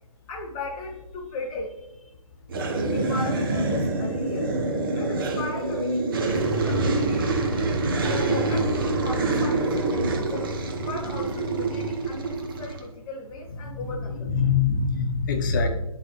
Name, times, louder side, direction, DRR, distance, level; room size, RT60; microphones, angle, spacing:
voice 1, 0.3-2.1 2.9-4.5 4.9-7.7 8.0-10.5 10.8-14.5, left 2 dB, 15° left, -3 dB, 0.5 m, -37 dB
sound 1, 2.5-12.8, right 2 dB, 40° right, 0.8 m, -26 dB
voice 2, 13.6-15.7, left 5 dB, 35° left, 3 dB, 1.0 m, -24 dB
8.9 x 4.0 x 3.1 m, 0.97 s
figure-of-eight pair, 140°, 18 cm